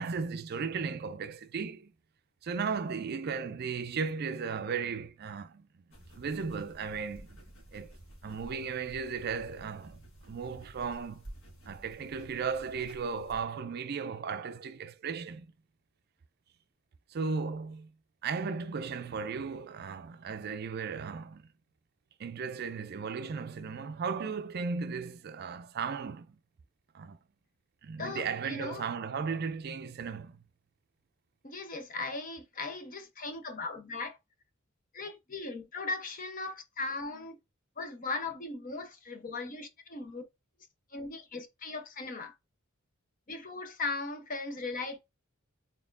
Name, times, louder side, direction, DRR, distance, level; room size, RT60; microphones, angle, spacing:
voice 1, 0.0-1.9 2.4-5.7 6.2-7.4 7.7-7.9 8.2-10.0 10.3-11.2 11.7-15.5 17.1-17.9 18.2-21.4 22.2-26.4 26.9-27.2 27.8-30.4, right 5 dB, 50° right, 0.4 m, -36 dB
sound 1, 5.9-13.4, right 1 dB, 75° left, 1.6 m, -52 dB
voice 2, 28.0-28.9 31.4-34.2 34.9-37.4 37.8-40.2 40.9-42.3 43.3-45.1, left 3 dB, 40° left, 0.8 m, -38 dB
4.2 x 3.5 x 2.5 m
head